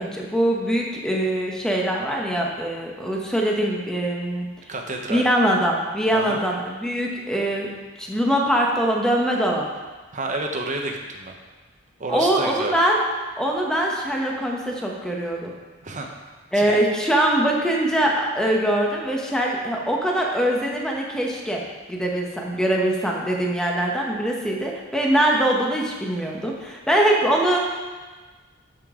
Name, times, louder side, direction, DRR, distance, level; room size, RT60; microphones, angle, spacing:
voice 1, 0.0-4.5 5.1-7.7 8.0-9.7 12.1-13.0 13.4-15.5 16.5-21.6 21.9-27.8, right 1 dB, 5° left, -1 dB, 1.1 m, -22 dB
voice 2, 4.7-5.2 6.1-6.4 10.1-11.3 12.0-12.8 15.8-16.1 16.5-16.8, right 2 dB, 40° right, 2 dB, 1.0 m, -29 dB
12.5 x 5.3 x 3.8 m, 1.3 s
head